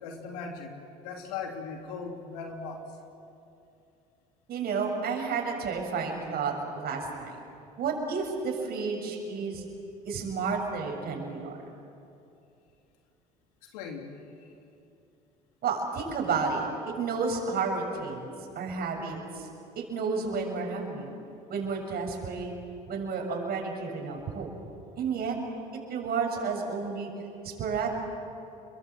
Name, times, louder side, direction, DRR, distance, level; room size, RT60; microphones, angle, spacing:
voice 1, 0.0-0.8 1.0-2.8 13.7-14.1, left 5 dB, 80° left, 3 dB, 3.0 m, -38 dB
voice 2, 4.5-7.3 7.8-9.6 10.0-11.6 15.6-19.5 19.8-21.1 21.5-22.5 22.9-24.5 25.0-25.4 25.7-27.1 27.4-27.9, right 5 dB, 50° right, 1 dB, 7.1 m, -31 dB
30.0 x 22.5 x 7.9 m, 2.7 s
hypercardioid pair, 65°, 20 cm